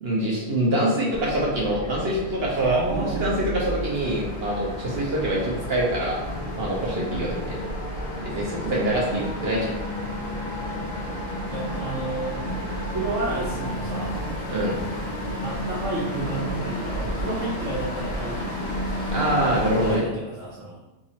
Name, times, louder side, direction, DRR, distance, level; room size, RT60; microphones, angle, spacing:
voice 1, 0.0-6.2 6.5-7.6 8.2-9.7 14.5-14.8 19.1-20.0, right 1 dB, 55° right, -4 dB, 1.0 m, -25 dB
sound 1, 1.1-20.0, equal, 75° left, 1.2 m, -31 dB
voice 2, 2.6-3.3 11.5-12.4 12.8-14.3 15.4-18.5 18.8-19.2 19.6-20.8, right 2 dB, 75° right, -7 dB, 1.2 m, -31 dB
3.6 x 3.0 x 2.8 m, 1.0 s
omnidirectional pair, 1.3 m